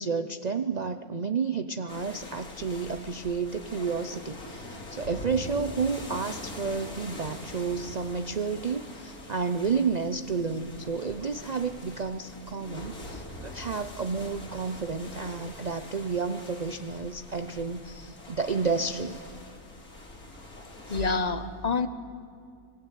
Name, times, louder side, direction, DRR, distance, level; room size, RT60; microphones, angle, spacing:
voice 1, 0.0-19.2, right 5 dB, 40° right, 10 dB, 0.6 m, -31 dB
sound 1, 1.9-21.1, left 1 dB, 75° left, 3.8 m, -43 dB
voice 2, 20.9-21.9, left 4 dB, 30° left, 11 dB, 0.9 m, -27 dB
25.0 x 20.0 x 9.2 m, 2.3 s
omnidirectional pair, 1.6 m